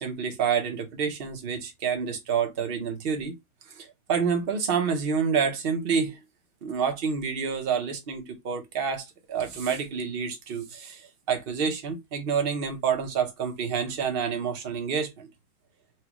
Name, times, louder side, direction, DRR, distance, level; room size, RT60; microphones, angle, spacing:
voice 1, 0.0-3.3 3.7-6.2 6.6-15.3, right 6 dB, 45° right, 0.8 m, -28 dB
4.6 x 2.3 x 2.9 m
omnidirectional pair, 2.0 m